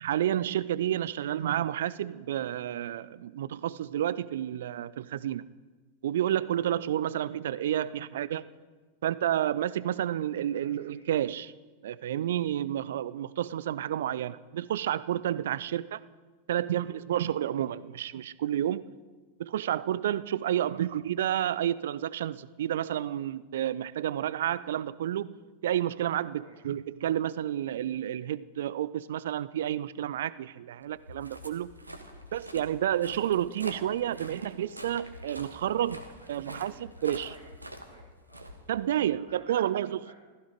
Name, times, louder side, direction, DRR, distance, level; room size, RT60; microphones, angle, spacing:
voice 1, 0.0-5.5 6.0-8.4 9.0-11.5 11.8-16.0 16.5-18.9 19.4-25.3 25.6-31.7 32.3-36.0 36.3-36.7 37.0-37.3 38.7-40.0, right 11 dB, 60° right, 0.5 m, -30 dB
voice 2, 7.8-8.5 10.5-11.1 16.5-17.0 20.5-20.8 26.3-26.6 34.1-34.6 36.2-36.7 36.9-37.5 37.8-38.4 39.0-40.2, right 1 dB, 90° left, 5.6 m, -56 dB
Walk footsteps, 30.9-39.2, equal, 85° right, 1.5 m, -46 dB
15.0 x 15.0 x 5.2 m
figure-of-eight pair, 90°, 0 cm